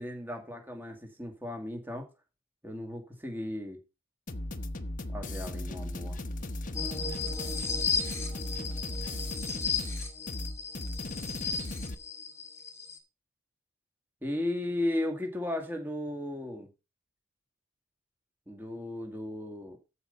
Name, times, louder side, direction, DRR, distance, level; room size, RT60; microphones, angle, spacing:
voice 1, 0.0-2.1 2.6-3.8 5.1-6.2 14.2-16.7 18.5-19.8, left 1 dB, 10° right, 2.3 m, -35 dB
sound 1, 4.3-11.9, left 1 dB, 40° left, 0.9 m, -37 dB
sound 2, 6.7-13.0, left 5 dB, 15° left, 2.2 m, -35 dB
14.0 x 5.2 x 5.5 m
head